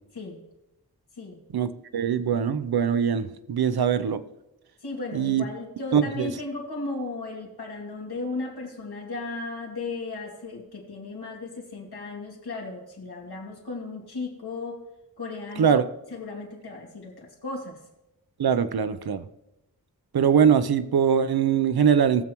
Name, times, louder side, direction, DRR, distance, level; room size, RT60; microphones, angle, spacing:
voice 1, 1.5-4.2 5.1-5.4 5.9-6.3 15.6-15.8 18.4-19.2 20.1-22.2, right 7 dB, 80° right, 12 dB, 0.7 m, -22 dB
voice 2, 4.8-14.8 15.2-15.8 16.1-17.8, left 3 dB, 90° left, 0 dB, 2.3 m, -35 dB
18.5 x 7.4 x 3.0 m, 0.93 s
wide cardioid pair, 105°, 37 cm